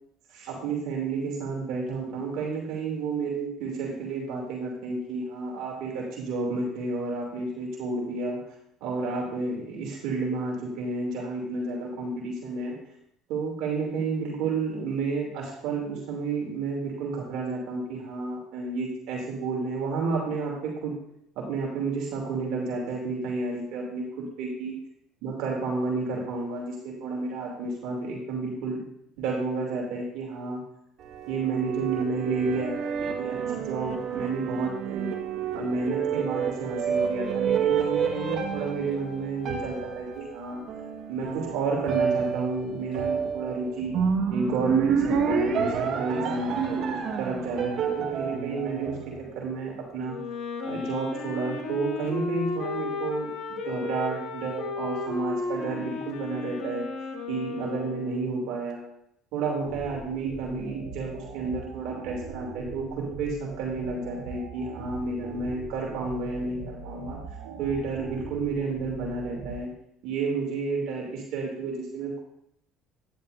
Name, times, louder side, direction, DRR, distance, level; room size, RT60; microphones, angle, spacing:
voice 1, 0.3-8.4 8.8-12.7 13.3-20.9 21.4-24.8 25.2-28.8 29.2-30.6 31.3-33.4 33.6-35.1 35.5-40.6 41.1-44.0 44.3-49.0 49.3-50.1 50.6-53.3 53.6-56.8 57.3-58.8 59.3-67.2 67.6-69.7 70.0-72.2, right 4 dB, 70° right, -1 dB, 2.8 m, -31 dB
sound 1, 31.0-49.6, right 6 dB, 55° right, 1.6 m, -29 dB
Wind instrument woodwind instrument, 50.0-58.4, left 4 dB, 60° left, 1.9 m, -34 dB
sound 2, 59.6-69.6, right 3 dB, 90° right, 2.3 m, -40 dB
10.5 x 10.0 x 2.7 m, 0.74 s
supercardioid pair, 95°, 0 cm